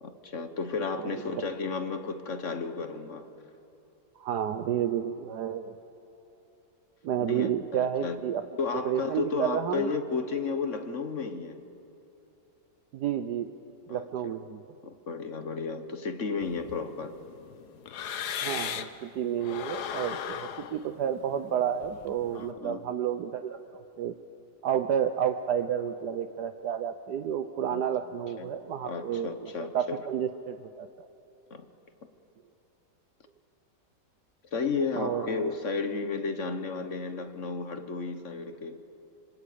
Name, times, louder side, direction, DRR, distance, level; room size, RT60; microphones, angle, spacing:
voice 1, 0.0-3.2 7.2-8.2 8.6-11.6 13.9-14.3 14.8-17.1 22.3-22.8 27.7-27.8 28.4-28.5 28.8-30.0 31.5-31.6 34.5-38.8, left 4 dB, 45° left, 9 dB, 1.5 m, -33 dB
voice 2, 4.2-5.7 7.0-8.4 8.7-9.9 12.9-13.5 13.9-14.6 18.4-24.1 24.6-31.1 35.0-35.5, right 9 dB, 70° right, 8 dB, 1.3 m, -31 dB
sound 1, 16.4-19.0 19.4-22.4, left 9 dB, 65° left, 1.4 m, -38 dB
26.0 x 25.5 x 8.6 m, 2.9 s
omnidirectional pair, 1.9 m